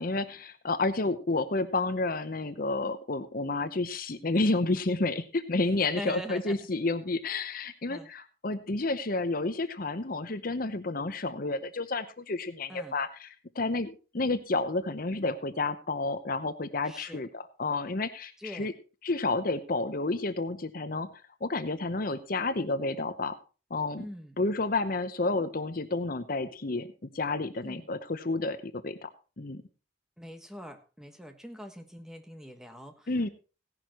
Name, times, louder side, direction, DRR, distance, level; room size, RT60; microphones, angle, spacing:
voice 1, 0.0-18.7 19.0-21.1 21.4-23.4 23.7-24.0 24.4-29.1 29.4-29.6 33.1-33.3, left 3 dB, 45° left, 11 dB, 0.8 m, -30 dB
voice 2, 6.0-6.6 7.9-8.1 12.7-13.0 16.8-17.2 18.4-18.7 24.0-24.4 27.6-27.9 30.2-33.1, equal, 5° right, 6 dB, 1.4 m, -43 dB
17.0 x 11.0 x 3.0 m, 0.33 s
head